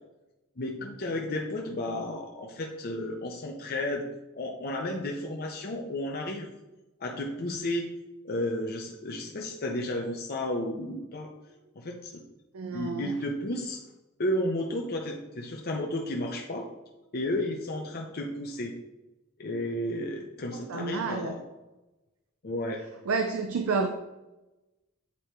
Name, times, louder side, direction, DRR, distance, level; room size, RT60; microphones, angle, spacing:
voice 1, 0.6-4.0 4.4-6.5 7.0-7.9 8.2-11.3 11.8-12.1 12.7-13.8 14.2-16.7 17.1-18.7 19.4-21.4 22.4-22.8, left 1 dB, 50° left, 1 dB, 0.6 m, -32 dB
voice 2, 12.5-13.1 20.5-21.4 23.1-23.9, right 4 dB, 80° right, 6 dB, 0.5 m, -30 dB
8.4 x 3.0 x 4.4 m, 1.0 s
head